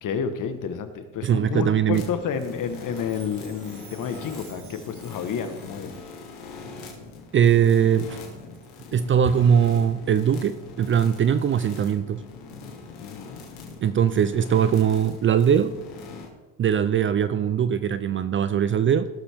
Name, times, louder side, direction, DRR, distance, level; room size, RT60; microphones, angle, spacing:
voice 1, 0.0-5.9 13.0-13.4, left 7 dB, 50° left, 9 dB, 1.4 m, -30 dB
voice 2, 1.2-2.1 7.3-8.2 8.9-12.2 13.8-15.8 16.6-19.1, right 8 dB, 30° right, 13 dB, 0.5 m, -21 dB
sound 1, 1.9-16.3, left 4 dB, 90° left, 2.7 m, -42 dB
Chime, 2.2-6.3 6.9-7.0 7.7-7.9 8.5-8.7 9.3-9.4 10.1-10.2 10.9-11.0, right 6 dB, 50° right, 2.4 m, -52 dB
17.0 x 7.2 x 3.5 m, 1.2 s
supercardioid pair, 95°, 42 cm